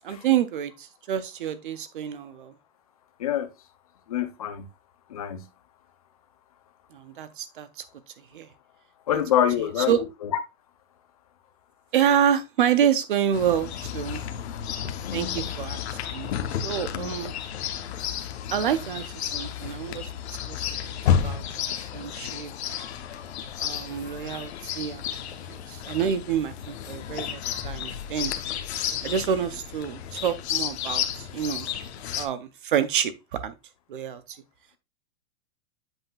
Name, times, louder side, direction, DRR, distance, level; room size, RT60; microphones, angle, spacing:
voice 1, 0.0-2.5 6.9-7.7 8.3-8.5 9.9-10.0 11.9-14.2 15.1-15.8 16.1-16.3 16.6-17.3 18.5-20.1 20.5-20.8 21.1-22.5 23.6-25.0 25.5-28.3 29.0-31.7 32.1-33.5 33.9-34.4, right 9 dB, 40° right, 0.5 m, -27 dB
voice 2, 3.2-3.5 4.1-4.7 5.1-5.5 9.1-10.3 15.0-15.4 16.9-17.1 31.6-31.7, left 10 dB, 30° left, 0.4 m, -27 dB
Chirp tweet, 13.3-32.3, left 9 dB, 50° left, 0.8 m, -32 dB
7.9 x 5.7 x 2.2 m
supercardioid pair, 180°, 41 cm